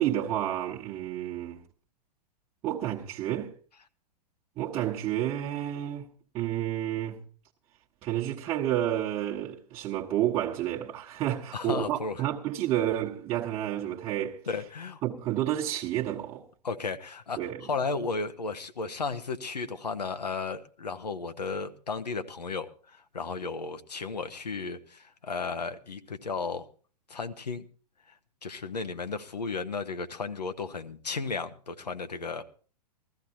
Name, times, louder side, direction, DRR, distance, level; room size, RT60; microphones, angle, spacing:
voice 1, 0.0-1.6 2.6-3.5 4.6-6.1 6.3-7.2 8.0-14.4 15.0-16.5 17.4-17.6, right 12 dB, 30° right, 1.2 m, -30 dB
voice 2, 11.5-12.2 14.5-15.0 16.6-26.7 27.1-27.7 28.1-28.2 28.4-32.4, left 4 dB, 75° left, 1.1 m, -34 dB
20.5 x 14.0 x 2.8 m
figure-of-eight pair, 105°, 21 cm